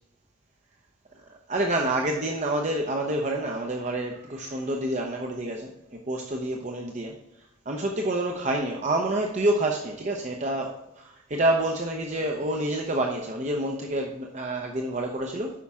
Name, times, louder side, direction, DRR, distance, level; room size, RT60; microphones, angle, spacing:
voice 1, 1.5-5.7 6.1-7.1 7.7-10.8 11.3-15.5, right 1 dB, 35° right, 1 dB, 0.7 m, -27 dB
8.4 x 5.8 x 3.6 m, 0.89 s
head